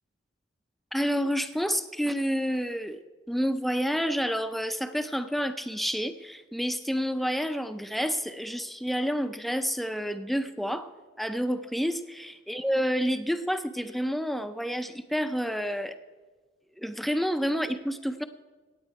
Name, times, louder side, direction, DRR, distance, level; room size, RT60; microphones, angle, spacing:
voice 1, 0.9-3.0 3.3-10.9 11.2-16.0 16.8-18.2, equal, ahead, 10 dB, 0.5 m, -29 dB
17.0 x 8.6 x 4.7 m, 1.3 s
head